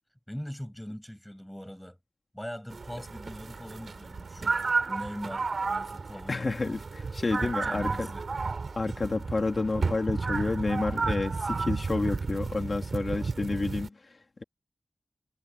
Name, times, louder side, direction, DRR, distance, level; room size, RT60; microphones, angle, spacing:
voice 1, 0.3-2.0 2.3-6.5 7.4-8.3, equal, 5° left, 6.7 m, -41 dB
sound 1, 2.7-13.9, right 4 dB, 65° right, 4.6 m, -32 dB
voice 2, 6.3-8.1 8.8-14.4, left 3 dB, 45° left, 2.7 m, -30 dB
wide cardioid pair, 80°, 0 cm